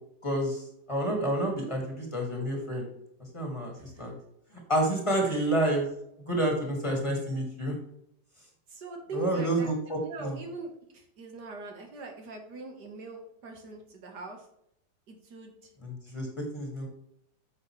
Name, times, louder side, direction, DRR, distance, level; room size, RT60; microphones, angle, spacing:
voice 1, 0.2-2.9 3.3-4.1 4.7-5.9 6.3-7.7 9.1-10.4 15.8-16.9, right 1 dB, 15° left, 0 dB, 2.3 m, -29 dB
voice 2, 3.8-4.1 5.3-5.5 8.7-14.4 15.1-15.6, right 3 dB, 70° right, 2 dB, 2.0 m, -42 dB
9.3 x 7.3 x 3.2 m, 0.74 s
omnidirectional pair, 1.9 m